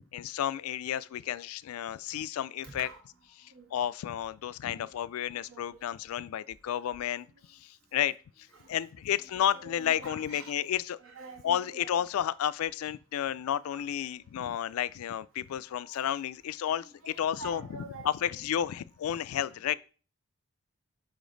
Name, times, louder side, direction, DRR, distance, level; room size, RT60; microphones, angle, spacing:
voice 1, 0.1-2.9 3.4-8.1 8.7-11.0 11.4-19.7, left 10 dB, 85° left, 0.3 m, -32 dB
voice 2, 2.6-3.0 3.5-3.7 4.7-4.9 5.5-5.8 8.5-8.7 9.6-10.6 11.0-11.9 13.7-13.8 15.8-16.1 16.8-18.1 19.3-19.8, right 2 dB, 70° right, 1.4 m, -47 dB
5.2 x 5.0 x 3.8 m
head